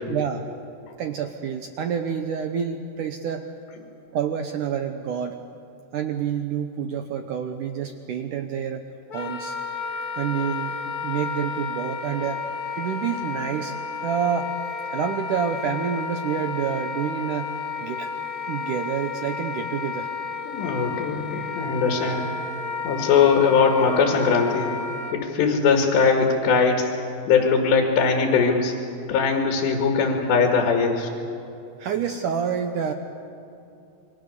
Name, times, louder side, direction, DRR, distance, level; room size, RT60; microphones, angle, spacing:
voice 1, 0.1-0.4 1.0-3.5 4.1-5.4 5.9-9.6 10.2-12.4 12.8-14.5 14.9-17.5 17.8-18.1 18.5-20.1 31.8-32.9, right 7 dB, 80° right, 6 dB, 1.8 m, -28 dB
Wind instrument woodwind instrument, 9.1-25.2, left 5 dB, 60° left, 0.9 m, -32 dB
voice 2, 20.5-22.2 22.8-24.7 25.1-26.9 27.3-28.7 29.1-31.1, left 5 dB, 90° left, 2 dB, 4.1 m, -20 dB
28.0 x 23.0 x 6.8 m, 2.8 s
omnidirectional pair, 4.9 m